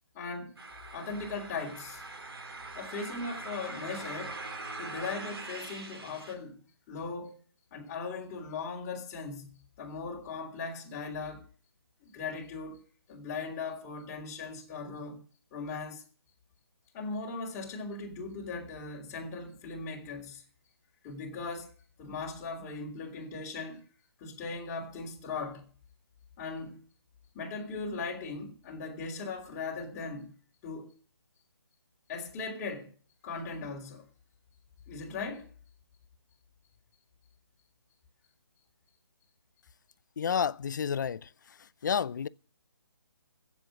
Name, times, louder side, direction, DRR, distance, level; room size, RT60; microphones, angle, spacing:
voice 1, 0.1-0.6 0.9-2.0 2.7-4.4 4.8-6.6 6.9-7.4 7.7-11.4 12.0-12.8 13.1-15.2 15.5-16.0 16.9-20.4 21.0-21.7 22.0-23.8 24.2-25.7 26.4-26.8 27.3-30.3 30.6-30.9 32.1-32.9 33.2-34.0 34.9-35.5, left 4 dB, 20° left, 3.3 m, -38 dB
sound 1, 0.6-6.3, right 3 dB, 65° right, 4.0 m, -42 dB
voice 2, 40.2-41.3 41.8-42.3, left 7 dB, 45° left, 0.6 m, -30 dB
16.0 x 7.4 x 7.7 m
figure-of-eight pair, 150°, 14 cm